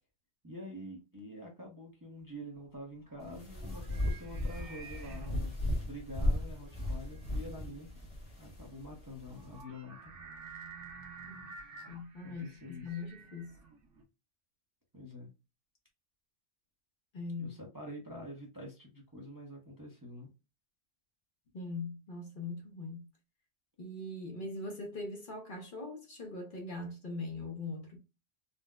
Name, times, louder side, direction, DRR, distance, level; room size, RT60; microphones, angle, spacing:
voice 1, 0.4-7.9 8.4-10.1 10.5-10.6 12.2-12.9 14.9-15.3 17.4-20.3, left 1 dB, 20° right, 0.7 m, -47 dB
sound 1, 2.6-14.0, right 4 dB, 90° right, 1.1 m, -52 dB
sound 2, 3.2-9.6, left 1 dB, 30° left, 1.1 m, -36 dB
voice 2, 11.9-13.6 17.1-17.6 21.5-23.1 23.8-28.0, left 2 dB, 50° left, 0.8 m, -41 dB
4.0 x 2.1 x 2.2 m
omnidirectional pair, 1.2 m